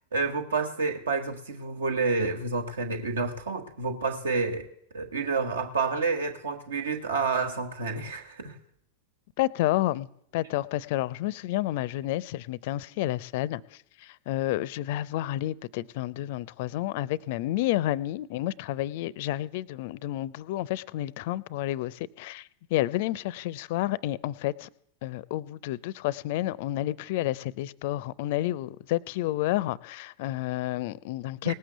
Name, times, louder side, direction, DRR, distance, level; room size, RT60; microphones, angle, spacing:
voice 1, 0.1-4.7 4.9-8.5 31.4-31.5, right 4 dB, 70° right, 1.5 m, -29 dB
voice 2, 9.4-10.1 10.3-13.6 14.0-24.7 25.0-31.5, left 15 dB, 50° left, 0.5 m, -30 dB
18.5 x 7.6 x 7.8 m
figure-of-eight pair, 90°, 0 cm